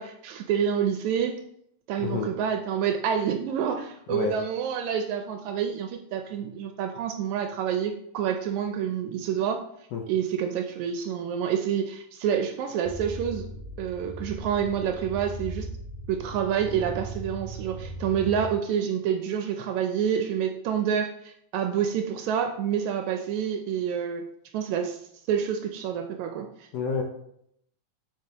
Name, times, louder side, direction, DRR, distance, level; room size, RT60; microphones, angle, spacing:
voice 1, 0.0-1.4 1.9-9.6 10.1-13.5 13.8-15.7 16.1-24.3 24.5-26.7, right 8 dB, 80° right, 5 dB, 1.7 m, -28 dB
voice 2, 2.0-2.3 4.1-4.3 9.9-10.0 26.7-27.0, left 5 dB, 70° left, 1 dB, 1.7 m, -28 dB
sound 1, 12.8-18.5, right 2 dB, 35° right, 0.5 m, -38 dB
8.0 x 5.3 x 2.9 m, 0.72 s
omnidirectional pair, 3.6 m